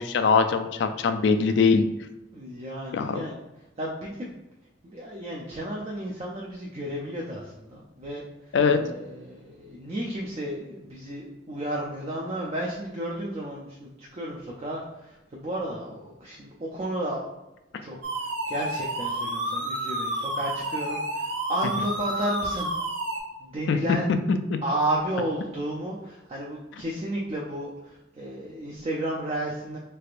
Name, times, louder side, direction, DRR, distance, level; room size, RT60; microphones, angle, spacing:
voice 1, 0.0-1.8 2.9-3.2 8.5-8.8 23.7-24.0 24.3-24.6, left 5 dB, 60° left, 8 dB, 0.3 m, -22 dB
voice 2, 2.3-3.4 3.8-4.3 4.8-8.2 8.8-17.3 17.8-22.7 23.4-24.1 24.6-29.8, right 1 dB, 30° right, -3 dB, 0.4 m, -32 dB
sound 1, 18.0-23.2, right 1 dB, 70° right, 0.8 m, -30 dB
3.3 x 3.2 x 2.4 m, 0.99 s
head